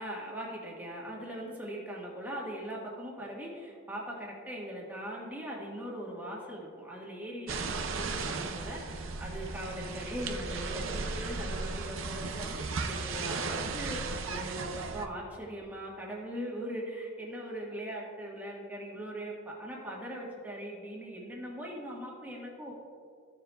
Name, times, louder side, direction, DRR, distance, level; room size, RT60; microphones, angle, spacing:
voice 1, 0.0-22.7, equal, 10° right, -3 dB, 1.3 m, -40 dB
sound 1, 7.5-15.1, right 4 dB, 90° right, 0.6 m, -36 dB
14.5 x 7.0 x 2.3 m, 2.2 s
head